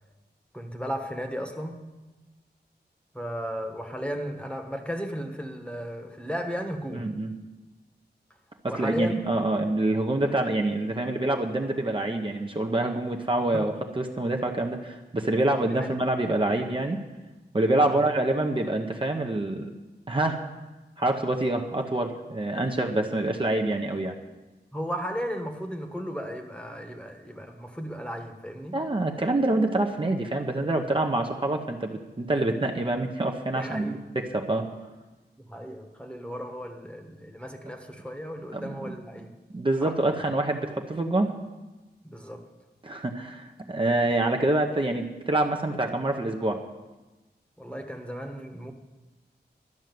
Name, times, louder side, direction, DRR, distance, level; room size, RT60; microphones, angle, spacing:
voice 1, 0.5-1.9 3.1-7.1 8.7-9.3 13.5-13.7 15.7-15.9 17.8-18.1 24.7-28.8 33.6-34.0 35.4-39.3 39.8-40.0 42.0-42.5 47.6-48.7, equal, 5° left, 4 dB, 1.3 m, -35 dB
voice 2, 6.9-7.3 8.7-17.0 17.5-19.7 20.1-20.4 21.0-24.1 28.7-33.9 34.3-34.6 38.5-38.9 39.5-41.3 42.8-46.6, right 2 dB, 30° right, 2 dB, 0.9 m, -26 dB
12.0 x 6.3 x 9.4 m, 1.1 s
wide cardioid pair, 105°, 18 cm